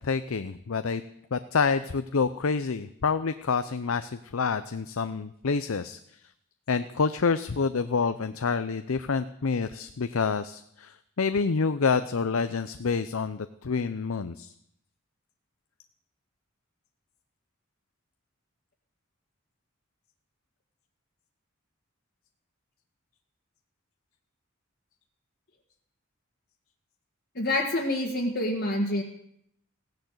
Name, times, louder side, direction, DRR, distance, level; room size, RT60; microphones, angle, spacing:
voice 1, 0.0-1.0 1.3-6.0 6.7-14.5, left 5 dB, 75° left, 11 dB, 0.6 m, -28 dB
voice 2, 27.3-29.0, left 1 dB, 50° left, -2 dB, 1.8 m, -27 dB
16.0 x 10.5 x 8.0 m, 0.74 s
head